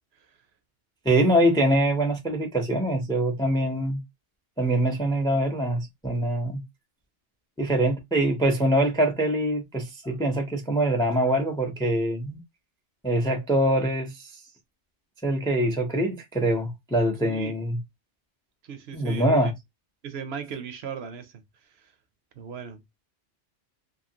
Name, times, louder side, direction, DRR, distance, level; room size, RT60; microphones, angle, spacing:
voice 1, 1.0-4.0 4.6-6.6 7.6-12.4 13.0-14.3 15.2-17.8 18.9-19.5, right 1 dB, 5° left, 0.3 m, -24 dB
voice 2, 18.6-19.5 20.0-21.4 22.4-22.8, right 7 dB, 65° right, 0.8 m, -37 dB
2.8 x 2.4 x 2.7 m
omnidirectional pair, 1.2 m